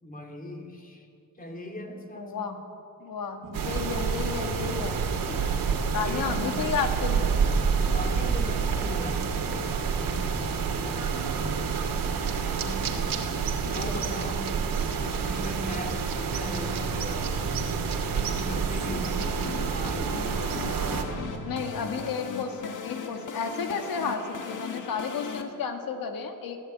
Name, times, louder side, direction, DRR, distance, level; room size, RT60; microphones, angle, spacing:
voice 1, 0.0-1.1 1.3-2.5 5.3-6.7 7.9-12.0 12.5-13.0 13.5-14.6 15.0-17.5 18.1-20.5 21.1-21.5, equal, 25° left, 2 dB, 2.8 m, -40 dB
voice 2, 2.2-2.6 3.0-5.0 5.9-7.4 13.6-14.3 21.4-26.6, left 6 dB, 90° left, 5 dB, 2.2 m, -32 dB
sound 1, 3.4-22.2, right 3 dB, 70° right, 1.5 m, -43 dB
sound 2, 3.5-21.0, right 5 dB, 85° right, 2.5 m, -28 dB
sound 3, 18.6-25.4, left 5 dB, 65° left, 2.2 m, -38 dB
22.0 x 15.0 x 8.9 m, 2.6 s
cardioid pair, 95°, 33 cm